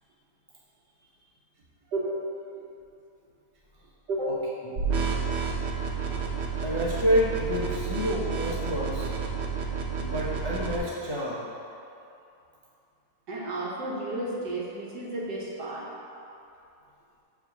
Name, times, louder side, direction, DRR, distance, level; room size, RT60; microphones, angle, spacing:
sound 1, 4.8-10.8, right 5 dB, 50° right, 0.9 m, -30 dB
voice 1, 6.6-9.1 10.0-11.5, equal, 35° left, -6 dB, 0.4 m, -28 dB
voice 2, 13.3-15.9, right 2 dB, 85° right, -4 dB, 1.8 m, -32 dB
8.0 x 3.4 x 5.9 m, 2.7 s
omnidirectional pair, 1.8 m